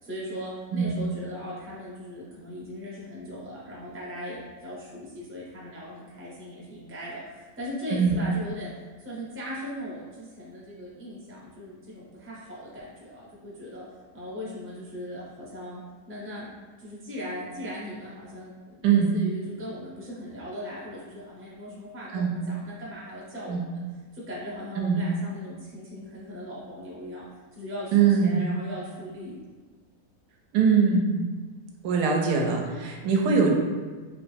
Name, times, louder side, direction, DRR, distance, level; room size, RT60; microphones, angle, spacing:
voice 1, 0.0-8.7 9.0-13.8 14.1-15.8 16.1-16.5 16.8-18.5 18.8-23.8 24.1-27.3 27.5-29.4, left 1 dB, 10° right, -6 dB, 0.6 m, -39 dB
voice 2, 27.9-28.4 30.5-31.1 31.8-33.5, right 6 dB, 85° right, 1 dB, 1.1 m, -22 dB
3.6 x 3.0 x 3.2 m, 1.4 s
omnidirectional pair, 1.7 m